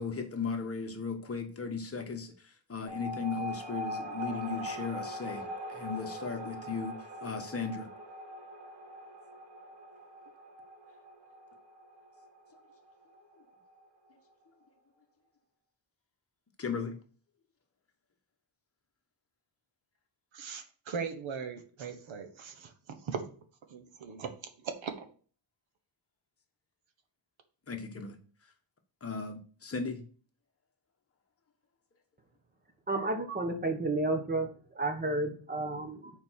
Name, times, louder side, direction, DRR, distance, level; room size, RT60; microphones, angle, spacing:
voice 1, 0.0-7.9 16.6-17.0 27.7-28.2 29.0-30.1, left 5 dB, 30° left, 1.2 m, -36 dB
sound 1, 2.9-13.8, equal, 65° right, 2.8 m, -42 dB
voice 2, 20.3-23.2 23.7-24.3 24.6-25.1, right 6 dB, 80° right, 1.4 m, -39 dB
voice 3, 32.9-34.5 34.7-36.1, right 2 dB, 20° right, 1.3 m, -31 dB
6.8 x 4.3 x 6.3 m
wide cardioid pair, 155°, 46 cm